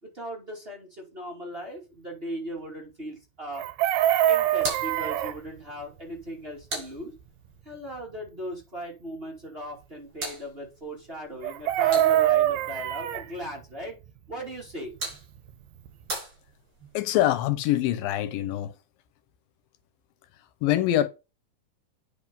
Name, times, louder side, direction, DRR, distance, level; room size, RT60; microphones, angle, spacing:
voice 1, 0.0-3.9 4.3-7.1 7.6-14.0 14.3-14.9, equal, 20° right, 2.2 m, -38 dB
Chicken rooster, 3.5-5.4 11.4-13.3 15.5-15.6 15.9-16.1, right 13 dB, 75° right, 2.4 m, -23 dB
sound 1, 4.5-7.6 9.6-12.5 14.5-17.0, right 2 dB, 35° right, 5.3 m, -40 dB
voice 2, 16.9-18.7 20.6-21.1, left 13 dB, 80° left, 2.4 m, -24 dB
9.3 x 5.3 x 5.3 m
omnidirectional pair, 4.1 m